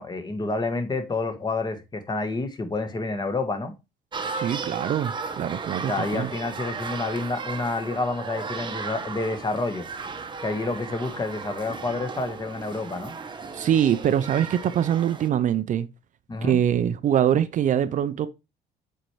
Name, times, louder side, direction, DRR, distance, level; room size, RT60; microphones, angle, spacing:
voice 1, 0.0-3.7 5.9-9.9 10.4-13.1 16.3-16.6, left 3 dB, 25° left, 1.3 m, -29 dB
sound 1, 4.1-15.3, right 5 dB, 30° right, 0.9 m, -35 dB
voice 2, 4.3-6.3 13.5-15.9 16.4-18.3, right 10 dB, 50° right, 0.5 m, -23 dB
7.7 x 4.4 x 3.2 m
cardioid pair, 110°, 17 cm